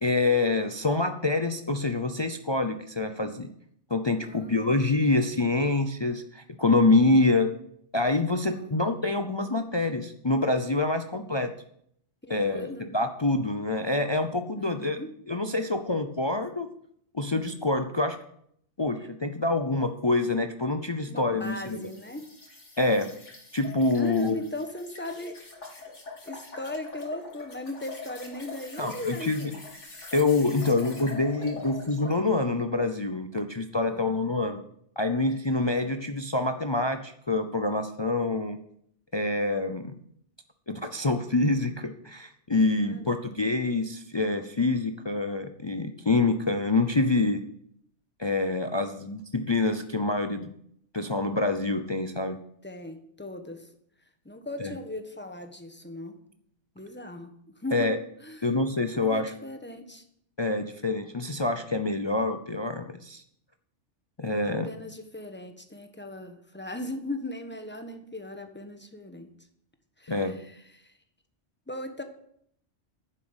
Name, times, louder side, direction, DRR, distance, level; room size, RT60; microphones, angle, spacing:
voice 1, 0.0-3.5 3.9-7.5 7.9-11.5 12.3-15.0 15.3-16.7 17.1-18.2 18.8-21.9 22.8-23.1 23.5-24.4 28.8-29.5 30.1-34.6 35.0-38.6 39.1-40.0 40.7-47.4 48.2-50.5 50.9-52.4 54.6-54.8 57.7-58.0 58.4-59.3 60.4-63.2 64.2-64.7 70.1-70.4, left 2 dB, 30° left, 7 dB, 0.5 m, -26 dB
voice 2, 4.2-4.7 8.4-8.7 12.3-12.8 14.6-15.1 21.1-22.3 23.9-25.4 26.2-29.6 33.8-34.3 42.8-43.3 52.6-53.7 54.2-56.1 56.7-57.3 57.6-57.9 58.2-58.5 59.0-60.0 64.4-69.3 70.0-70.9 71.7-72.0, left 1 dB, 10° left, 6 dB, 1.2 m, -38 dB
sound 1, 21.4-32.2, left 3 dB, 85° left, 2.9 m, -44 dB
9.8 x 7.6 x 8.0 m, 0.69 s
omnidirectional pair, 1.2 m